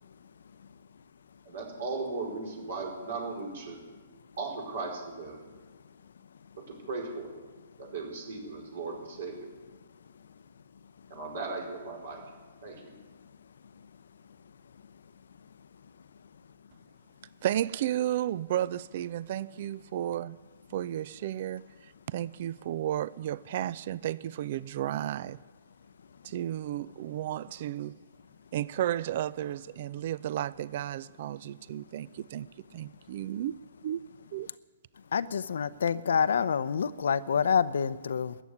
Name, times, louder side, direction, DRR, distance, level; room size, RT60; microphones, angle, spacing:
voice 1, 1.5-3.8 4.4-5.4 6.6-7.3 7.8-9.5 11.1-12.2 12.6-12.9, right 3 dB, 65° right, 5.2 m, -37 dB
voice 2, 17.4-20.4 20.7-25.4 26.2-27.9 28.5-33.6 33.8-34.0 34.3-34.5, right 12 dB, 50° right, 0.4 m, -33 dB
voice 3, 35.1-38.4, left 7 dB, 70° left, 0.6 m, -27 dB
13.5 x 9.2 x 9.8 m
hypercardioid pair, 130°, 0 cm